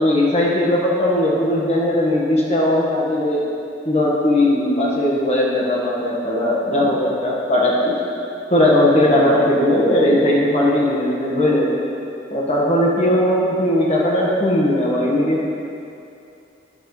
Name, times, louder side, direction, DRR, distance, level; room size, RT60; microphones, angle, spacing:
voice 1, 0.0-3.4 3.8-7.9 8.5-11.8 12.3-15.5, left 1 dB, 35° left, -4 dB, 1.6 m, -18 dB
12.0 x 9.7 x 3.3 m, 2.7 s
head